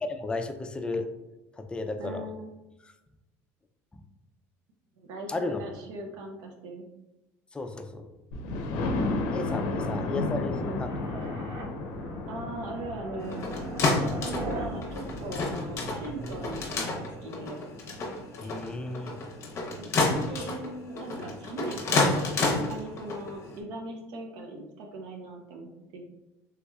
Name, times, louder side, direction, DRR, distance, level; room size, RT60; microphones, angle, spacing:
voice 1, 0.1-1.1 1.6-2.3 5.3-5.6 7.5-8.1 9.3-11.5 18.4-19.1, left 3 dB, 15° left, 6 dB, 0.4 m, -34 dB
voice 2, 2.0-2.5 5.0-6.9 9.8-10.3 10.6-10.8 12.3-13.4 14.0-17.6 19.8-22.1 22.4-26.0, right 2 dB, 70° right, 2 dB, 0.6 m, -40 dB
Thunder, 8.3-18.0 18.6-18.7 19.1-19.2 19.5-19.6, left 2 dB, 75° left, 0.5 m, -34 dB
sound 1, 10.9-16.8, right 1 dB, 55° right, 1.0 m, -39 dB
sound 2, 13.2-23.6, left 3 dB, 40° left, 0.7 m, -30 dB
3.4 x 3.0 x 2.3 m, 0.98 s
supercardioid pair, 110°, 7 cm